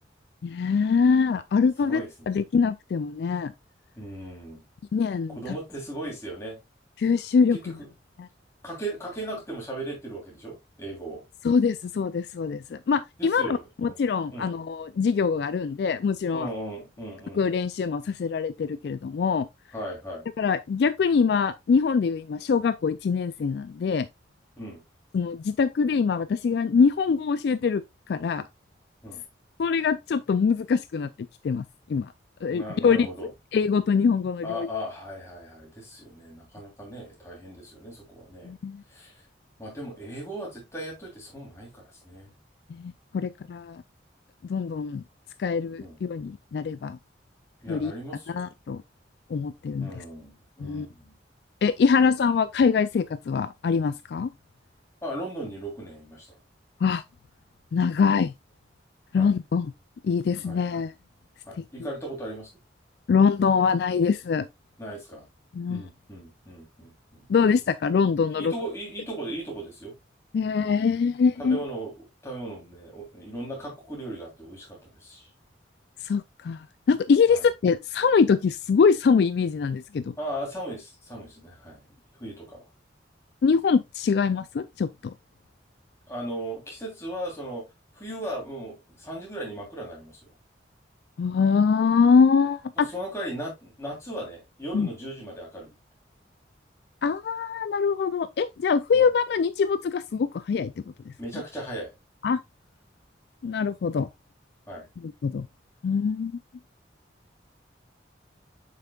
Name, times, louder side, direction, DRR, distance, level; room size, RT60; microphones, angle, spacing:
voice 1, 0.4-3.5 4.9-5.6 7.0-7.8 8.2-8.3 11.4-16.5 17.4-19.5 20.4-24.1 25.1-28.4 29.6-31.1 31.4-31.6 31.9-32.1 32.4-34.7 38.4-38.8 42.7-43.8 44.5-45.0 45.4-47.0 47.7-47.9 48.3-48.8 49.3-50.0 50.6-50.9 51.6-54.3 56.8-57.0 57.7-58.3 59.1-59.7 60.0-60.9 61.8-61.9 63.1-64.5 65.5-65.8 67.3-68.5 70.3-71.6 76.0-80.1 83.4-85.1 91.2-92.9 94.7-94.9 97.0-100.7 101.1-101.4 102.2-102.4 103.4-104.1 105.0-105.5 105.8-106.4, left 5 dB, 60° left, 0.3 m, -24 dB
voice 2, 1.8-2.4 4.0-4.6 5.3-6.6 7.5-7.9 8.6-11.2 13.2-14.0 14.3-14.5 16.3-17.4 19.7-20.2 24.6-24.8 29.0-29.2 32.5-33.3 34.4-38.5 38.9-39.2 39.6-42.3 45.8-46.0 47.6-48.5 49.8-51.1 55.0-56.4 59.1-59.3 60.4-60.6 61.5-62.5 64.8-65.3 65.7-67.2 68.3-69.9 71.4-71.9 72.2-75.3 77.3-77.4 80.2-82.7 86.1-87.7 87.9-90.2 92.8-95.7 98.9-99.1 101.2-101.9 104.7-104.9, right 1 dB, 15° left, 3.2 m, -37 dB
7.4 x 5.7 x 2.3 m
head